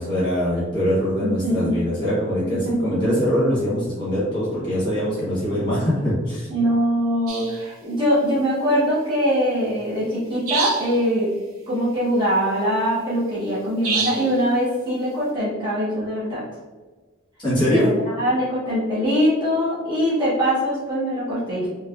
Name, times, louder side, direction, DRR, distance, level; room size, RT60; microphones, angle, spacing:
voice 1, 0.0-6.5 17.4-17.9, equal, 20° left, -9 dB, 1.4 m, -22 dB
voice 2, 1.2-1.8 2.6-3.0 6.5-11.3 11.7-16.4 17.6-21.7, equal, 20° right, -9 dB, 0.9 m, -22 dB
sound 1, 7.3-7.6 10.5-11.0 13.8-14.4, right 5 dB, 80° right, 0.6 m, -26 dB
3.3 x 3.1 x 2.4 m, 1.3 s
head